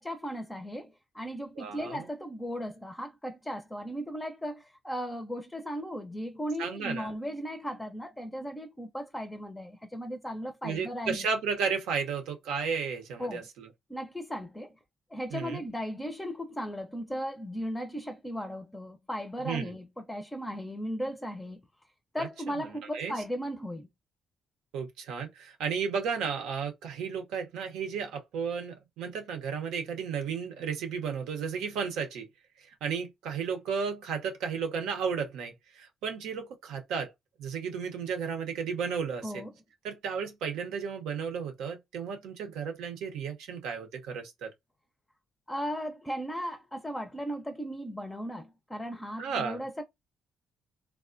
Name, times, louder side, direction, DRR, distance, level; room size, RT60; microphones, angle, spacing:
voice 1, 0.0-11.3 13.2-13.5 13.9-14.7 15.1-21.6 22.1-23.9 39.2-39.5 45.5-49.8, equal, 10° left, 0.5 m, -36 dB
voice 2, 1.6-2.1 6.6-7.1 10.6-13.7 15.3-15.6 19.4-19.7 22.2-22.6 22.9-23.1 24.7-32.3 32.6-37.1 37.4-39.4 39.8-44.5 49.2-49.6, right 6 dB, 90° right, 0.7 m, -33 dB
3.4 x 2.0 x 2.5 m
cardioid pair, 90°, 0 cm